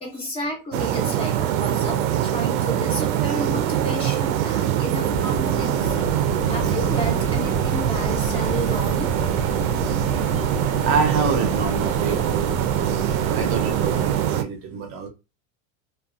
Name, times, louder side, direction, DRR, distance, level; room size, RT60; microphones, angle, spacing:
voice 1, 0.0-6.0 6.5-9.1, equal, 15° left, 0.5 m, -32 dB
sound 1, 0.7-14.4, right 11 dB, 90° right, 0.5 m, -23 dB
sound 2, 4.9-14.3, left 2 dB, 80° left, 1.2 m, -32 dB
voice 2, 10.8-12.6 13.0-15.1, right 5 dB, 35° right, 0.6 m, -27 dB
2.5 x 2.3 x 2.4 m
supercardioid pair, 160°, 41 cm